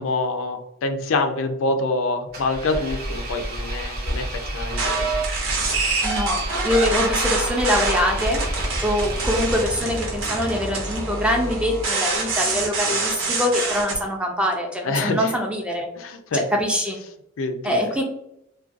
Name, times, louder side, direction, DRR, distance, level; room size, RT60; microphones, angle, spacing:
voice 1, 0.0-5.1 12.9-13.0 14.8-15.3 16.0-16.5 17.4-18.0, left 2 dB, 75° left, 6 dB, 0.4 m, -26 dB
Engine, 2.3-10.1, right 1 dB, 45° right, 0.6 m, -30 dB
sound 1, 4.7-14.0, right 3 dB, 80° right, 0.8 m, -26 dB
voice 2, 6.0-8.4 8.8-15.9 16.3-17.0 17.6-18.0, left 1 dB, 5° right, 1 dB, 0.3 m, -24 dB
2.5 x 2.2 x 2.4 m, 0.79 s
head